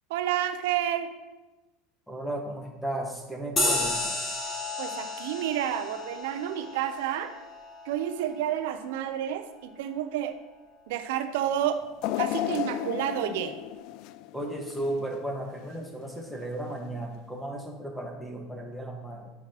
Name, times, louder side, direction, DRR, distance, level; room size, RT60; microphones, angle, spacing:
voice 1, 0.1-1.1 4.8-7.3 7.8-10.3 10.9-11.8 12.2-13.5, right 11 dB, 75° right, 9 dB, 0.7 m, -30 dB
voice 2, 2.1-4.4 14.3-19.3, right 1 dB, ahead, 1 dB, 1.5 m, -35 dB
sound 1, 3.6-8.5, left 2 dB, 30° left, 2.2 m, -32 dB
sound 2, 12.0-15.2 15.6-15.7 16.8-16.9, left 14 dB, 60° left, 0.3 m, -33 dB
9.3 x 5.8 x 3.0 m, 1.1 s
hypercardioid pair, 95°, 0 cm